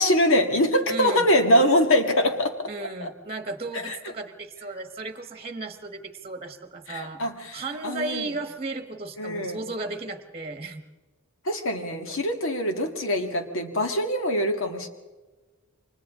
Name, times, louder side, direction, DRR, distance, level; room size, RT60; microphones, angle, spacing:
voice 1, 0.0-2.7 3.0-3.1 3.8-4.0 6.9-8.3 9.2-9.6 11.5-14.9, left 1 dB, 65° left, 5 dB, 2.0 m, -23 dB
voice 2, 0.9-1.3 2.7-7.2 7.5-10.8, right 3 dB, 30° right, 7 dB, 1.4 m, -35 dB
29.0 x 24.5 x 3.7 m, 1.2 s
head